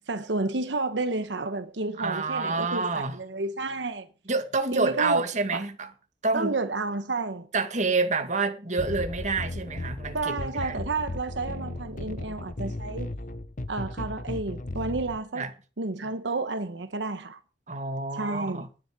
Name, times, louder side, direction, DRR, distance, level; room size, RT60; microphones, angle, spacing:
voice 1, 0.1-4.1 4.7-5.2 5.5-5.6 6.3-7.5 10.1-13.1 13.7-15.4 15.8-17.4 18.1-18.7, right 3 dB, 85° right, 1.1 m, -31 dB
voice 2, 2.0-3.2 4.3-5.9 6.2-6.5 7.5-10.8 15.3-15.5 17.7-18.7, right 3 dB, 40° right, 2.2 m, -28 dB
sound 1, 8.8-15.2, left 1 dB, 45° left, 1.0 m, -36 dB
10.5 x 8.6 x 8.9 m
head